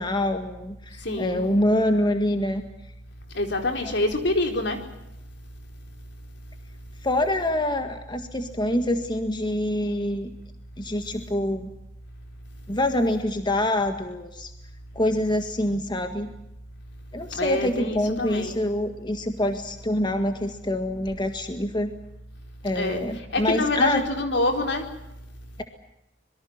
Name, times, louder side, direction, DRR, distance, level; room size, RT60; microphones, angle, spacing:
voice 1, 0.0-2.6 3.8-3.9 7.0-10.3 10.8-11.7 12.7-14.5 14.9-16.3 17.1-21.9 22.6-24.0, left 1 dB, 25° left, 6 dB, 1.8 m, -25 dB
voice 2, 1.0-1.5 3.3-4.8 17.3-18.6 22.7-24.9, left 2 dB, 65° left, 5 dB, 4.3 m, -26 dB
26.0 x 23.0 x 7.3 m, 0.87 s
head